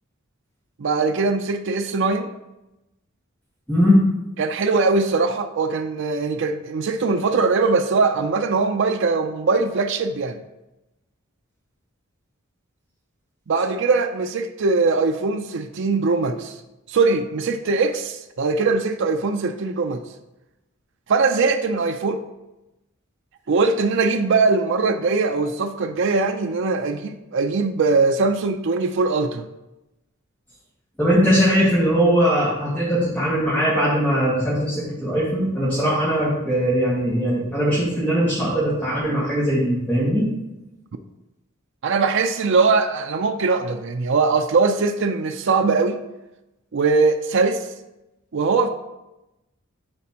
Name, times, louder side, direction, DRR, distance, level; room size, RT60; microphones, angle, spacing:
voice 1, 0.8-2.3 4.4-10.4 13.5-16.6 16.9-20.0 21.1-22.2 23.5-29.5 41.8-46.0 46.7-47.7 48.3-48.7, right 4 dB, 65° right, 6 dB, 0.5 m, -21 dB
voice 2, 3.7-4.0 31.0-40.3, equal, 10° left, -9 dB, 1.9 m, -20 dB
12.0 x 4.2 x 2.9 m, 0.95 s
head